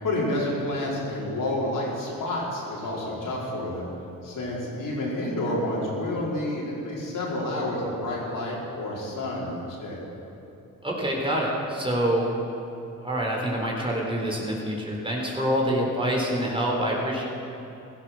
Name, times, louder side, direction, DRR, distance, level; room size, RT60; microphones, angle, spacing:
voice 1, 0.0-3.9 4.2-10.0, left 1 dB, 65° left, -5 dB, 4.8 m, -29 dB
voice 2, 10.8-12.3 13.0-17.2, equal, 15° right, -3 dB, 3.9 m, -26 dB
15.5 x 13.5 x 6.2 m, 2.9 s
cardioid pair, 75°, 34 cm